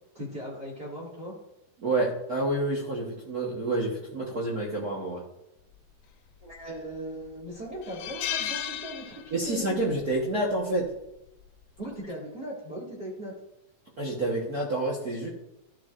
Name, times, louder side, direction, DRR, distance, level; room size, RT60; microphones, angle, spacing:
voice 1, 0.1-1.3 6.4-9.9 11.8-13.3, right 1 dB, 30° right, -5 dB, 2.2 m, -38 dB
voice 2, 1.8-5.2 9.3-10.9 14.0-15.3, right 2 dB, 80° right, -5 dB, 0.8 m, -28 dB
sound 1, 6.4-6.9 7.3-7.4 7.8-9.6 9.9-10.2 11.4-11.7, left 10 dB, 75° left, 2.1 m, -34 dB
13.0 x 8.2 x 2.5 m, 0.87 s
omnidirectional pair, 3.9 m